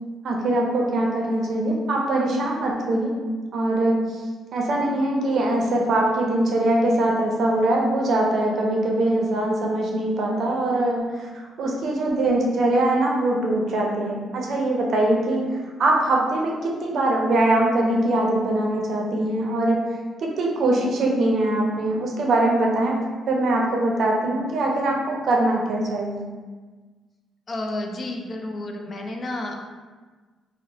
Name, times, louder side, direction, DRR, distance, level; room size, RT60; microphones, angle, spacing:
voice 1, 0.2-3.1 3.5-4.1 4.5-15.4 15.8-19.8 20.2-23.0 23.3-26.2, right 1 dB, 60° right, -1 dB, 0.5 m, -22 dB
voice 2, 27.5-29.5, left 1 dB, 40° left, 2 dB, 0.4 m, -31 dB
2.8 x 2.0 x 2.7 m, 1.4 s
cardioid pair, 90°, 0 cm